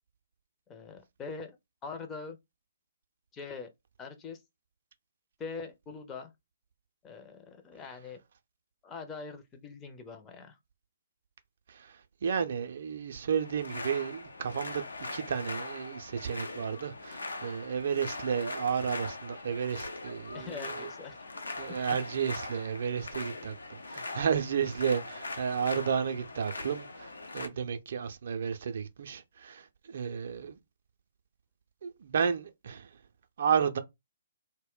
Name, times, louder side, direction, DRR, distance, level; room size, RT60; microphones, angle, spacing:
voice 1, 0.7-1.6 1.8-2.4 3.3-3.7 4.0-4.4 5.4-6.3 7.0-8.2 8.8-10.6 20.3-21.2 21.9-22.0 24.0-24.1 27.4-27.6, left 5 dB, 15° left, 0.5 m, -43 dB
voice 2, 11.7-14.8 15.1-20.8 21.6-30.6 31.8-32.9 33.4-33.8, right 7 dB, 55° right, 0.4 m, -32 dB
sound 1, 13.4-27.5, left 2 dB, 75° left, 0.5 m, -41 dB
2.1 x 2.1 x 3.5 m
figure-of-eight pair, 130°, 0 cm